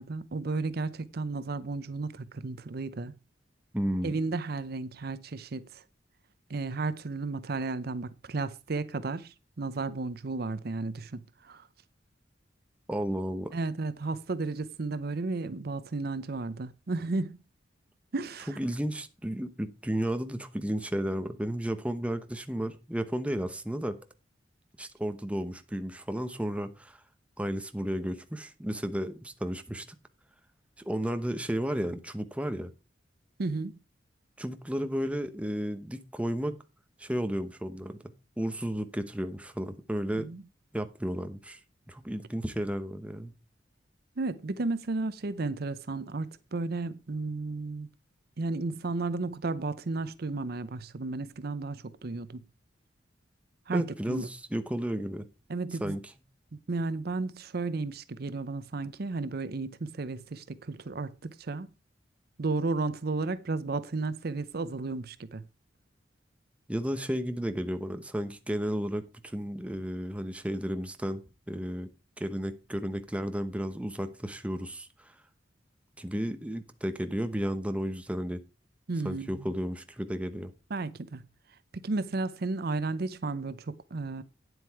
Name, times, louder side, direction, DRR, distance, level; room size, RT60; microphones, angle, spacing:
voice 1, 0.0-3.1 4.0-5.8 6.5-11.7 13.5-17.4 18.1-18.6 33.4-33.8 40.3-40.4 44.2-47.9 48.4-52.4 53.7-54.3 55.5-56.0 56.5-61.7 62.4-65.4 78.9-79.5 80.7-81.2 81.7-84.2, right 3 dB, 60° right, 0.7 m, -33 dB
voice 2, 3.7-4.1 12.9-13.5 18.5-24.0 24.8-27.0 27.4-30.0 30.8-32.7 34.4-36.6 37.0-38.0 38.4-40.3 40.7-41.6 41.9-43.3 53.7-55.3 55.8-56.1 66.7-71.9 72.2-75.1 76.0-78.4 79.0-80.5, equal, 5° right, 0.9 m, -33 dB
9.5 x 8.0 x 4.6 m
head